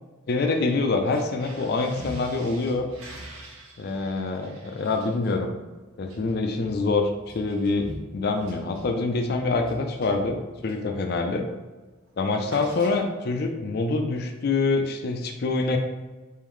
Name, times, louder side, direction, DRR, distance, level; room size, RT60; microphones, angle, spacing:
voice 1, 0.3-2.9 3.8-5.5 6.0-7.1 7.3-11.5 12.2-15.8, left 3 dB, 50° left, 4 dB, 0.4 m, -25 dB
sound 1, 1.0-10.9 11.3-11.6 11.8-13.4, right 1 dB, 75° right, 0.9 m, -44 dB
4.1 x 3.8 x 3.0 m, 1.2 s
head